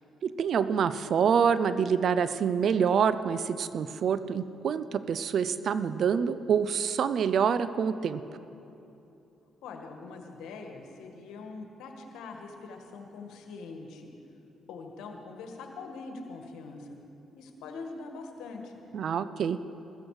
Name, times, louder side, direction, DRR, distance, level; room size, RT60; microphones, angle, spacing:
voice 1, 0.2-8.2 18.9-19.6, right 7 dB, 65° right, 13 dB, 0.5 m, -26 dB
voice 2, 9.6-14.1 14.7-17.0 17.3-18.7, left 4 dB, 80° left, 3 dB, 1.5 m, -43 dB
14.5 x 14.0 x 4.8 m, 2.9 s
supercardioid pair, 60°, 0 cm